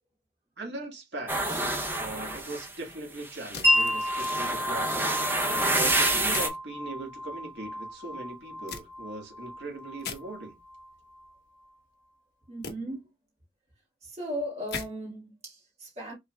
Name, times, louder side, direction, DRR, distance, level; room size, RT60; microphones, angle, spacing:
voice 1, 0.6-1.7 2.0-5.1 5.7-10.6, right 2 dB, 80° right, 1.7 m, -39 dB
sound 1, 1.3-2.7 3.2-6.5, right 2 dB, 10° right, 0.5 m, -28 dB
sound 2, 3.5-4.4 4.8-5.5 6.3-6.6 8.7-8.8 10.0-10.2 12.6-12.7 14.7-14.9, left 5 dB, 65° left, 1.0 m, -39 dB
Wind chime, 3.6-11.3, left 1 dB, 10° left, 2.4 m, -32 dB
voice 2, 12.5-13.1 14.0-16.1, equal, 35° right, 1.6 m, -37 dB
5.5 x 3.4 x 2.2 m
head